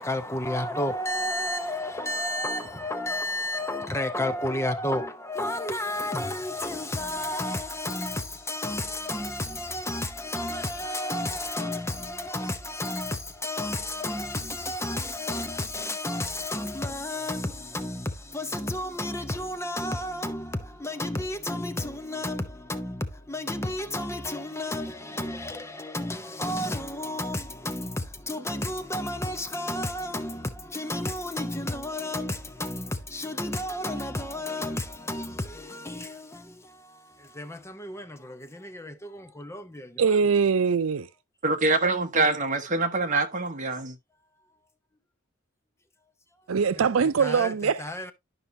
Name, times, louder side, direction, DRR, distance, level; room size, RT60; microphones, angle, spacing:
voice 1, 0.0-40.0 46.8-47.5 47.8-48.1, left 1 dB, 15° left, 0.8 m, -32 dB
voice 2, 40.0-41.1 46.5-47.9, right 6 dB, 85° right, 0.5 m, -22 dB
voice 3, 41.4-44.0, right 3 dB, 40° right, 1.3 m, -25 dB
11.5 x 5.4 x 2.7 m
head